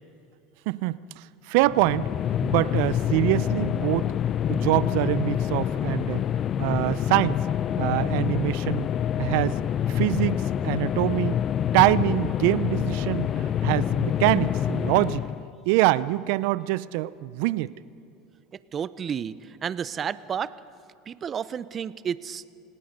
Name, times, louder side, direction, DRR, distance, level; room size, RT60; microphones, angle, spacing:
voice 1, 0.7-2.1 2.4-4.1 4.5-6.3 6.6-7.4 7.8-8.9 9.2-9.6 9.9-11.4 11.7-15.2 15.7-17.7, right 18 dB, 70° right, 18 dB, 0.6 m, -24 dB
sound 1, 1.6-15.5, left 10 dB, 45° left, 0.6 m, -26 dB
voice 2, 18.5-20.5 21.1-22.5, right 8 dB, 35° right, 17 dB, 0.8 m, -31 dB
29.0 x 18.5 x 5.4 m, 2.5 s
hypercardioid pair, 90°, 0 cm